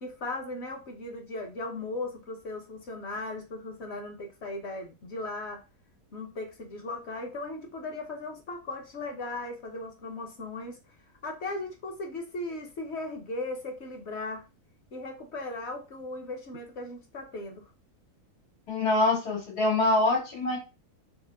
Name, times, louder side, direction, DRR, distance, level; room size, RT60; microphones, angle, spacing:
voice 1, 0.0-5.6 6.1-10.8 11.2-14.4 14.9-17.7, left 2 dB, 50° left, 3 dB, 1.0 m, -37 dB
voice 2, 18.7-20.6, left 2 dB, 80° left, -5 dB, 2.6 m, -25 dB
4.4 x 2.3 x 3.4 m, 0.29 s
omnidirectional pair, 1.6 m